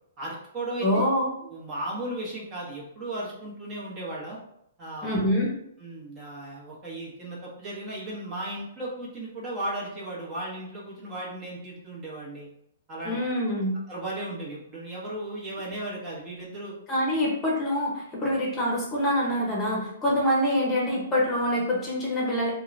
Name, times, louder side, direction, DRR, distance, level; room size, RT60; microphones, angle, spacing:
voice 1, 0.2-1.0 1.4-4.4 4.8-5.3 5.8-12.5 12.9-13.6 13.9-16.7 18.2-18.3 20.0-20.1, right 1 dB, 30° right, -5 dB, 1.0 m, -36 dB
voice 2, 0.8-1.2 5.0-5.5 13.0-13.8 16.9-22.5, equal, 20° left, -4 dB, 0.9 m, -25 dB
2.8 x 2.2 x 2.6 m, 0.75 s
figure-of-eight pair, 120°, 0 cm